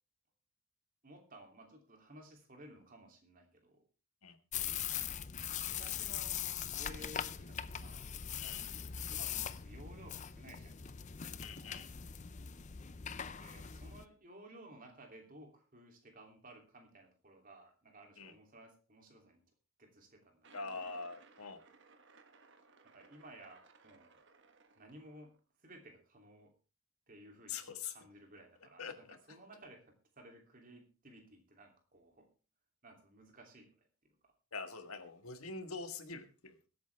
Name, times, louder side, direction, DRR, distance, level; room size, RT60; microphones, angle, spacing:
voice 1, 1.0-3.8 5.4-8.7 9.1-10.8 13.4-19.4 19.8-20.9 22.8-24.2 24.8-26.5 27.1-27.6 27.9-32.3 32.8-34.3, right 1 dB, 40° right, 3 dB, 3.0 m, -57 dB
sound 1, 4.5-14.0, left 9 dB, 35° left, 0.5 m, -41 dB
voice 2, 11.4-11.9 18.2-18.3 20.5-21.6 27.5-27.9 28.8-28.9 34.5-36.7, left 4 dB, 80° left, 8 dB, 1.7 m, -44 dB
sound 2, 20.4-25.4, right 4 dB, 55° right, 1.4 m, -63 dB
22.0 x 8.7 x 3.4 m, 0.35 s
head